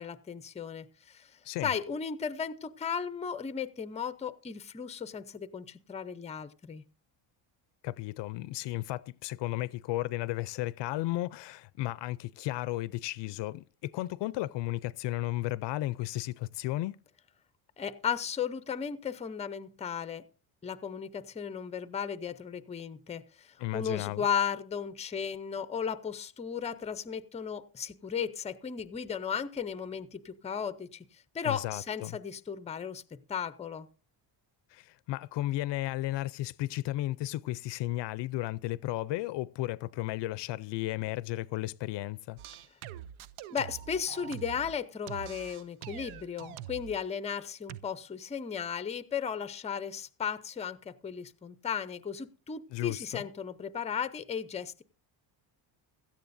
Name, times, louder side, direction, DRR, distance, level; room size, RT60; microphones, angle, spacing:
voice 1, 0.0-6.8 17.8-20.2 20.6-33.9 43.5-54.8, left 7 dB, 15° left, 0.5 m, -35 dB
voice 2, 7.8-17.0 23.6-24.2 31.4-32.2 34.7-42.4 52.7-53.2, left 17 dB, 65° left, 0.5 m, -34 dB
sound 1, 42.4-44.8 45.1-47.0 47.7-47.8, right 11 dB, 90° right, 0.7 m, -44 dB
16.5 x 13.0 x 2.6 m
cardioid pair, 130°, 46 cm